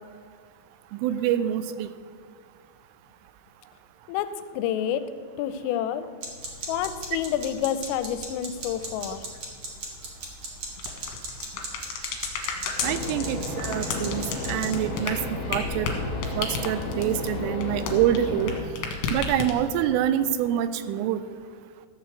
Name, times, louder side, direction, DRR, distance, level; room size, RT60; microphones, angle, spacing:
voice 1, 0.9-1.9 12.8-15.2 15.5-15.9 16.4-18.5 19.1-21.2, right 11 dB, 85° right, 12 dB, 3.1 m, -26 dB
voice 2, 4.1-5.0 5.3-6.1 6.7-9.2 12.6-12.7, left 10 dB, 85° left, 11 dB, 3.2 m, -28 dB
sound 1, 6.2-14.7, right 2 dB, 50° right, 2.2 m, -38 dB
sound 2, 10.8-18.5 18.8-19.8, left 5 dB, 70° left, 3.4 m, -32 dB
sound 3, 12.8-18.6, left 2 dB, 45° left, 2.9 m, -33 dB
14.0 x 5.7 x 7.9 m, 2.1 s
omnidirectional pair, 5.9 m